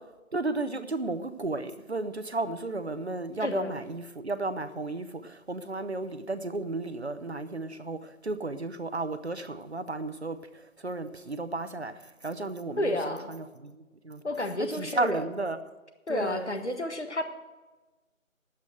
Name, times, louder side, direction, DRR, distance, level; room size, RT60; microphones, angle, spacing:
voice 1, 0.3-14.2 14.6-15.6 16.1-16.5, right 2 dB, 50° right, 0.9 m, -33 dB
voice 2, 3.4-3.8 12.8-13.3 14.2-15.2 16.1-17.2, left 1 dB, 55° left, 1.5 m, -31 dB
11.0 x 8.3 x 7.7 m
figure-of-eight pair, 175°, 41 cm